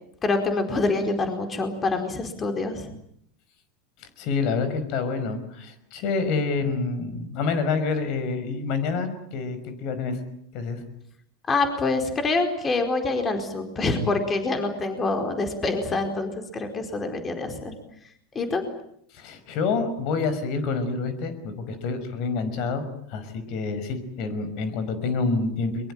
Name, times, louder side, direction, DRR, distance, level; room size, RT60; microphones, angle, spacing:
voice 1, 0.2-2.9 11.5-17.7 18.3-18.6, left 3 dB, 25° left, 6 dB, 4.7 m, -26 dB
voice 2, 4.2-10.2 10.5-10.8 19.1-25.9, left 4 dB, 55° left, 12 dB, 5.5 m, -27 dB
23.0 x 22.5 x 9.1 m, 0.71 s
hypercardioid pair, 90°, 0 cm